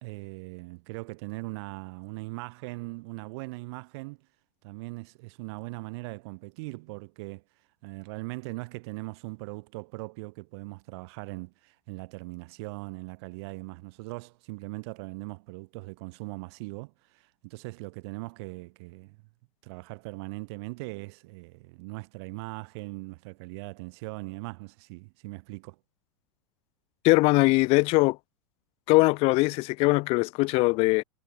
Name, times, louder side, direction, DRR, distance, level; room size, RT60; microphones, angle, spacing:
voice 1, 0.0-4.2 4.6-7.4 7.8-19.2 19.6-25.8, right 26 dB, 50° right, 1.6 m, -40 dB
voice 2, 27.0-28.2 28.9-31.0, left 24 dB, 35° left, 0.5 m, -21 dB
figure-of-eight pair, 95°, 18 cm